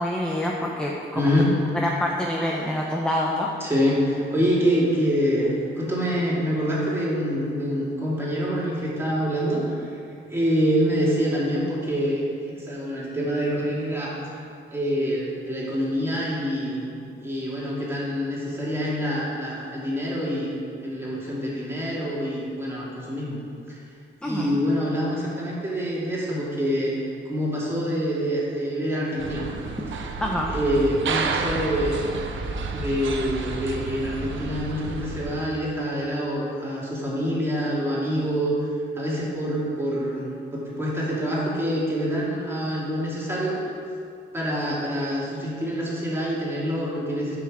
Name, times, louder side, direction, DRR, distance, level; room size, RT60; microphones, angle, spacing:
voice 1, 0.0-1.3 1.7-3.5 24.2-24.6 30.2-30.5, left 1 dB, 5° left, -1 dB, 0.6 m, -26 dB
voice 2, 1.2-1.5 3.6-9.9 10.3-23.4 24.2-26.9 27.3-29.5 30.5-32.0 32.7-38.5 39.0-43.6 44.3-47.4, equal, 10° right, -6 dB, 2.2 m, -26 dB
sound 1, 29.2-35.5, right 4 dB, 75° right, 0.8 m, -31 dB
10.5 x 5.9 x 4.8 m, 2.4 s
wide cardioid pair, 155°, 20 cm